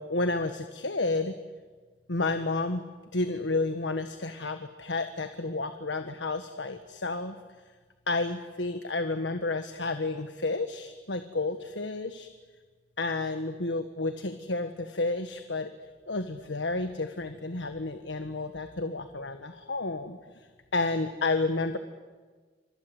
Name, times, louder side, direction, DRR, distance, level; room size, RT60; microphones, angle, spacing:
voice 1, 0.0-1.3 2.1-2.8 3.1-7.3 8.1-12.3 13.0-15.7 16.1-20.2 20.7-21.8, left 3 dB, 80° left, 9 dB, 1.4 m, -31 dB
28.0 x 25.5 x 7.9 m, 1.4 s
head